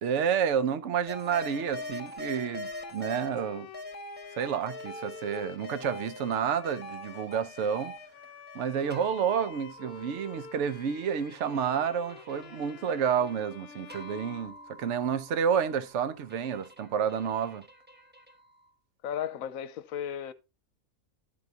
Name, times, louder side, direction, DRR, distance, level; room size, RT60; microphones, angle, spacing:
voice 1, 0.0-3.7 4.4-8.0 8.5-17.6, right 7 dB, 60° right, 1.0 m, -30 dB
sound 1, 1.1-3.3 3.7-18.7, left 1 dB, 10° right, 0.6 m, -45 dB
Bowed string instrument, 1.2-15.3, left 6 dB, 55° left, 0.8 m, -49 dB
voice 2, 19.0-20.3, left 9 dB, 75° left, 1.1 m, -34 dB
12.0 x 4.7 x 3.9 m
omnidirectional pair, 1.5 m